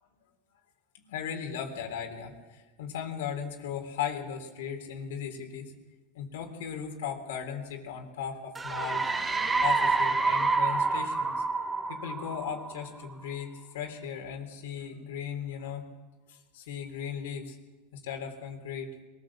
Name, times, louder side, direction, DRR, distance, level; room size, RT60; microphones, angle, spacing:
voice 1, 1.1-5.7 6.1-9.0 9.6-11.4 11.9-15.9 16.3-17.6 17.9-18.9, left 8 dB, 80° left, 3 dB, 3.5 m, -37 dB
sound 1, 8.6-13.1, right 3 dB, 15° right, 1.3 m, -28 dB
22.0 x 16.0 x 7.4 m, 1.2 s
supercardioid pair, 120°, 0 cm